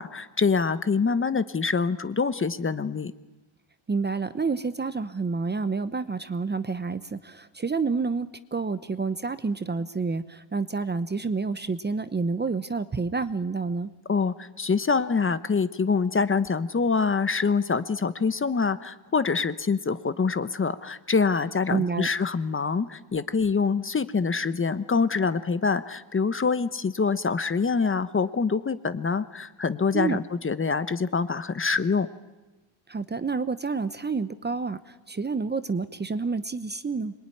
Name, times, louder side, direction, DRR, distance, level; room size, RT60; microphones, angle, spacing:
voice 1, 0.0-3.1 14.1-32.1, left 5 dB, 25° left, 13 dB, 1.0 m, -25 dB
voice 2, 3.9-13.9 21.7-22.1 29.9-30.2 32.9-34.8 35.1-37.1, right 4 dB, 20° right, 13 dB, 0.9 m, -29 dB
26.5 x 22.5 x 10.0 m, 1.1 s
cardioid pair, 140°, 49 cm